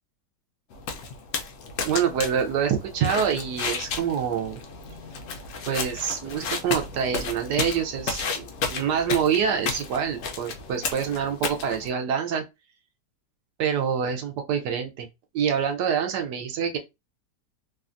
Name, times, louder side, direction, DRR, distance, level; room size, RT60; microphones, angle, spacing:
sound 1, 0.7-11.9, left 5 dB, 70° left, 0.7 m, -33 dB
voice 1, 1.8-4.6 5.7-12.4 13.6-15.1 15.3-16.8, right 7 dB, 75° right, 1.1 m, -26 dB
3.3 x 2.2 x 2.5 m
omnidirectional pair, 1.9 m